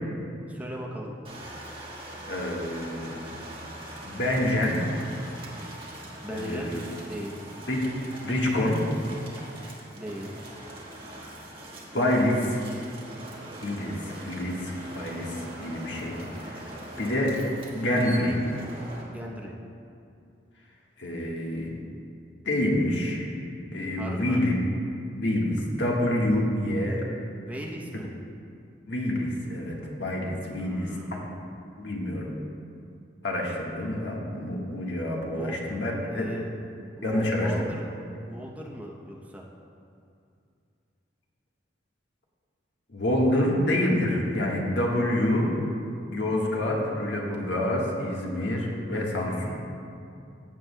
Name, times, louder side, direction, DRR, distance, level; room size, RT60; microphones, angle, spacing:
voice 1, 0.5-1.1 6.2-6.7 7.0-7.4 9.9-10.3 19.1-19.5 23.9-24.4 27.4-28.1 30.5-31.3 35.3-35.6 36.1-36.5 37.0-37.9 38.2-39.4, equal, 10° right, -2 dB, 0.7 m, -38 dB
sound 1, 1.2-19.0, right 1 dB, 30° right, 1.4 m, -42 dB
voice 2, 2.3-3.2 4.0-4.7 6.3-6.8 7.7-7.9 8.2-8.7 11.9-12.6 13.6-16.6 17.0-17.3 17.7-18.4 21.0-21.7 22.4-23.3 23.7-24.5 25.1-27.0 28.9-30.9 31.8-32.3 33.2-36.3 37.0-37.5 37.9-38.0 42.9-45.5 46.1-49.6, left 1 dB, 85° left, -2 dB, 1.4 m, -27 dB
15.0 x 7.7 x 2.2 m, 2.5 s
head